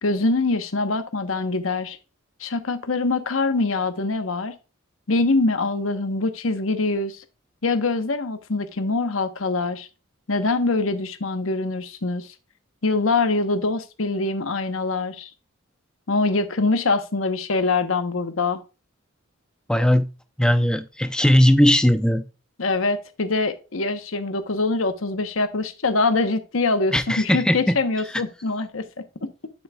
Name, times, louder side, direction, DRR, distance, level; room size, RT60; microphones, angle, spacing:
voice 1, 0.0-2.0 2.4-4.5 5.1-7.2 7.6-9.9 10.3-12.3 12.8-15.3 16.1-18.6 22.6-28.9 29.2-29.3, left 3 dB, 80° left, 1.0 m, -24 dB
voice 2, 19.7-20.1 20.4-22.2 26.9-27.8 28.1-28.2, equal, 5° left, 0.6 m, -18 dB
8.6 x 7.6 x 2.3 m
head